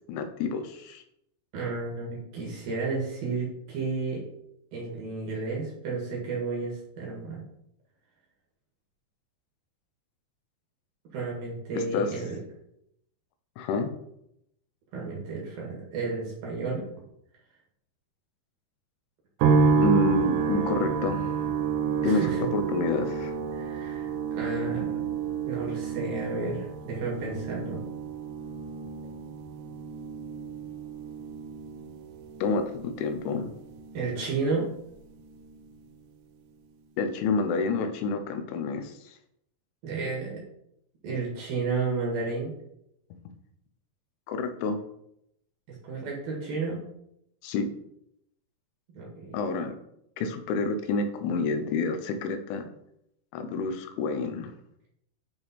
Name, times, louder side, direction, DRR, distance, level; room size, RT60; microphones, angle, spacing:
voice 1, 0.1-1.0 11.7-12.1 13.6-13.9 19.8-21.3 22.0-23.3 32.4-33.5 37.0-39.2 44.3-44.8 47.4-47.7 49.3-49.7 50.2-52.7 53.3-54.5, left 4 dB, 85° left, 7 dB, 3.1 m, -28 dB
voice 2, 1.5-4.2 4.7-7.4 11.1-12.4 14.9-16.9 22.0-22.5 23.5-25.1 25.5-27.8 33.9-34.7 39.8-40.4 41.0-42.5 45.7-46.8 48.9-49.4, right 4 dB, 60° right, -3 dB, 2.9 m, -32 dB
sound 1, 19.4-34.7 34.9-35.8, right 6 dB, 80° right, 3.0 m, -30 dB
9.4 x 3.5 x 4.1 m, 0.77 s
omnidirectional pair, 5.4 m